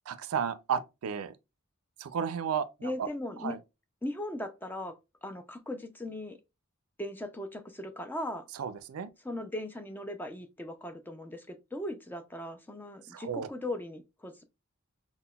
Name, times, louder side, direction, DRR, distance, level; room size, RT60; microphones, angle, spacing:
voice 1, 0.1-1.3 2.0-3.1 3.4-3.6 8.5-9.1 13.1-13.5, right 7 dB, 85° right, 0.4 m, -33 dB
voice 2, 2.8-3.5 4.0-6.4 7.0-8.5 9.2-14.4, left 1 dB, 10° left, 0.3 m, -38 dB
5.6 x 2.1 x 2.2 m
head